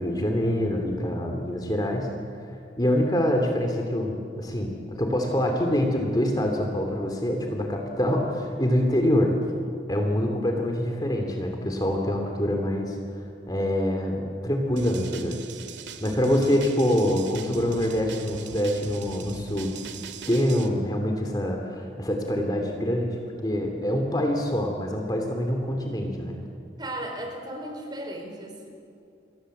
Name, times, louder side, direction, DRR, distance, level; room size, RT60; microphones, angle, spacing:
voice 1, 0.0-2.1 2.8-9.4 9.9-15.4 16.0-19.7 20.3-26.4, equal, 20° left, 2 dB, 2.9 m, -25 dB
sound 1, 14.8-20.7, right 4 dB, 80° right, 2.1 m, -40 dB
voice 2, 26.8-28.7, right 1 dB, 25° right, 2 dB, 4.6 m, -35 dB
29.5 x 23.0 x 7.9 m, 2.5 s
head